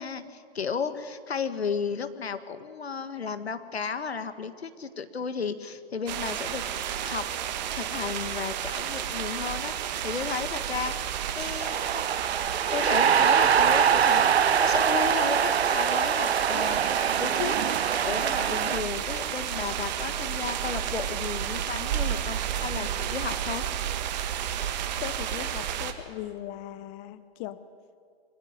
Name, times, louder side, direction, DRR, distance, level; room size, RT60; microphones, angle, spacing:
voice 1, 0.0-6.6 7.0-7.3 7.7-9.7 10.0-12.0 12.7-17.6 18.0-23.6, left 6 dB, 75° left, 11 dB, 1.7 m, -34 dB
sound 1, 6.1-25.9, right 10 dB, 45° right, 1.8 m, -32 dB
sound 2, 11.6-18.8, right 7 dB, 80° right, 0.8 m, -24 dB
voice 2, 25.0-27.6, left 13 dB, 20° left, 15 dB, 0.6 m, -38 dB
24.0 x 16.0 x 9.7 m, 2.2 s
figure-of-eight pair, 130°, 31 cm